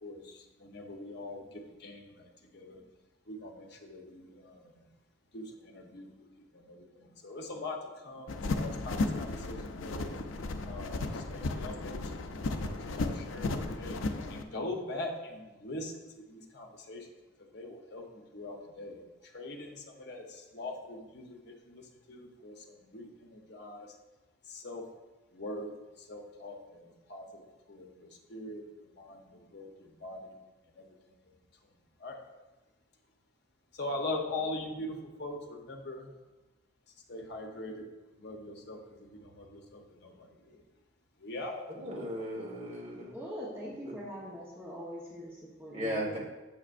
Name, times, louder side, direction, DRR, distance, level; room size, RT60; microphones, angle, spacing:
voice 1, 0.0-2.8 3.3-4.9 5.3-6.2 6.5-10.2 10.7-14.0 14.3-17.1 17.4-23.9 24.5-24.9 25.3-25.7 26.0-30.3 30.7-31.3 32.0-32.2 33.7-36.1 37.1-37.9 38.1-40.6 41.2-41.6, left 2 dB, 55° left, 2 dB, 0.8 m, -42 dB
sound 1, 8.3-14.4, left 2 dB, 85° left, 0.5 m, -34 dB
voice 2, 41.8-43.1 43.8-43.9 45.7-46.2, equal, 30° right, -3 dB, 1.5 m, -36 dB
voice 3, 43.1-46.2, equal, 10° right, -7 dB, 1.0 m, -42 dB
7.2 x 5.8 x 2.5 m, 1.1 s
head